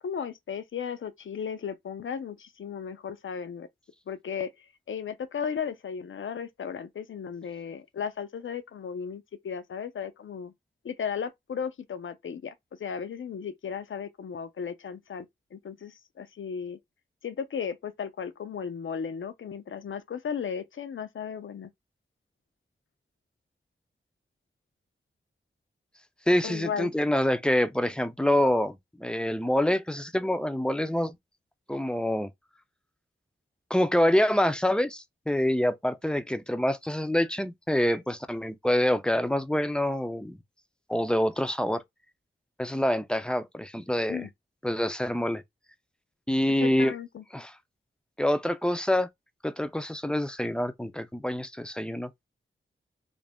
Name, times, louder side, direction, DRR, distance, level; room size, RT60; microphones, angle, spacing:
voice 1, 0.0-3.7 4.1-4.5 4.9-10.5 10.8-12.5 12.8-15.3 15.5-16.8 17.2-21.7 26.4-26.9 44.1-44.3 46.6-47.2, left 7 dB, 70° left, 0.6 m, -35 dB
voice 2, 26.3-31.1 31.7-32.3 33.7-40.4 40.9-41.8 42.6-44.3 44.6-45.4 46.3-46.9 47.3-47.5 48.2-49.1 49.4-52.1, left 1 dB, 5° left, 0.5 m, -26 dB
2.5 x 2.1 x 3.4 m
cardioid pair, 40°, 21 cm